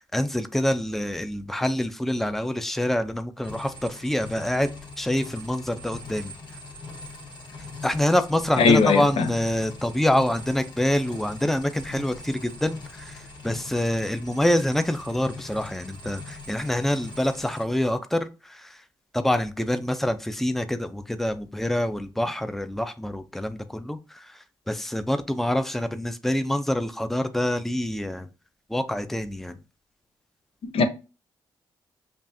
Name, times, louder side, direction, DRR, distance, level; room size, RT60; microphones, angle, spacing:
voice 1, 0.0-4.7 5.0-6.3 7.8-18.8 19.1-28.3 28.7-29.6, left 1 dB, 5° left, 0.5 m, -26 dB
sound 1, 3.4-17.6, left 2 dB, 50° left, 1.5 m, -41 dB
voice 2, 8.6-9.3 30.7-30.8, left 5 dB, 75° left, 0.7 m, -18 dB
5.3 x 2.5 x 2.7 m
supercardioid pair, 55°, 10 cm